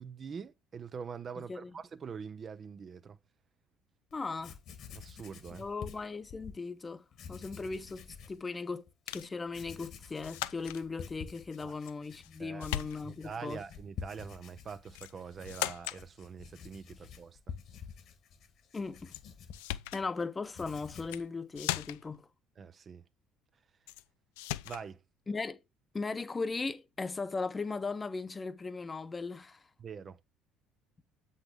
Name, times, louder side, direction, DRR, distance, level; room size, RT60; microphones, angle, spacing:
voice 1, 0.0-3.2 4.9-5.7 11.6-11.7 12.4-12.7 13.0-17.5 22.6-23.0 24.6-25.0 29.8-30.2, right 6 dB, 40° right, 0.6 m, -44 dB
Writing, 4.1-4.2 4.4-6.6 7.1-8.4 8.9-9.0 9.5-20.1 20.4-21.2, left 7 dB, 55° left, 1.5 m, -49 dB
voice 2, 4.1-4.6 5.5-7.0 7.3-8.9 9.1-13.6 18.7-19.1 19.9-22.3 25.3-25.6 25.9-29.6, left 4 dB, 25° left, 0.9 m, -38 dB
sound 1, 9.1-9.4 10.2-10.8 11.9-12.3 12.6-13.3 14.9-15.2 15.5-16.0 19.1-19.2 19.5-20.1 21.0-21.3 21.6-22.2 23.9-24.0 24.4-24.9, left 15 dB, 70° left, 0.4 m, -38 dB
8.0 x 5.5 x 3.5 m
figure-of-eight pair, 55°, 0 cm